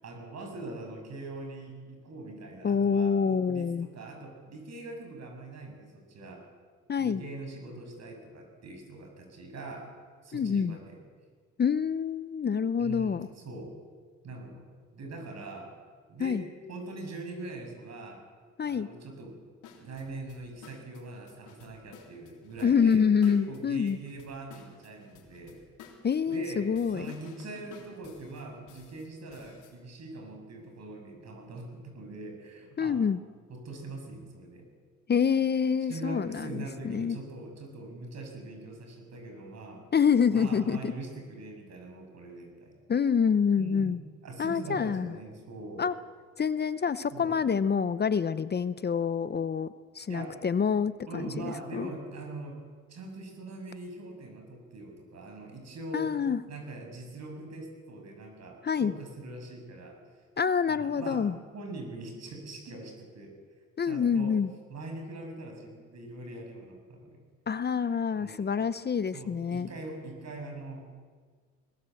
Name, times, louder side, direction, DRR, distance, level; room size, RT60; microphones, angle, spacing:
voice 1, 0.0-6.4 7.0-9.9 10.2-11.0 12.8-13.7 14.2-14.7 14.9-15.7 16.1-16.4 16.7-18.2 18.7-19.4 19.8-25.6 26.3-33.0 33.5-34.7 35.9-39.8 40.3-42.7 43.6-43.9 44.2-45.9 47.1-47.4 50.1-50.4 51.1-52.6 52.9-56.2 56.5-60.0 60.7-61.3 61.5-63.3 63.8-64.4 64.7-67.2 68.1-68.5 69.1-70.9, right 2 dB, 60° right, 3 dB, 7.1 m, -42 dB
voice 2, 2.6-3.9 6.9-7.2 10.3-10.8 11.6-13.3 16.2-16.4 18.6-18.9 22.6-24.0 26.0-27.1 32.8-33.2 35.1-37.2 39.9-40.9 42.9-44.0 44.4-45.1 45.8-45.9 46.4-49.7 49.9-51.9 55.9-56.4 58.6-58.9 60.4-61.3 63.8-64.5 67.5-69.7, left 6 dB, 35° left, 15 dB, 0.8 m, -27 dB
sound 1, 19.6-29.7, left 7 dB, 85° left, 3.8 m, -54 dB
21.5 x 20.0 x 7.8 m, 1.6 s
cardioid pair, 90°, 30 cm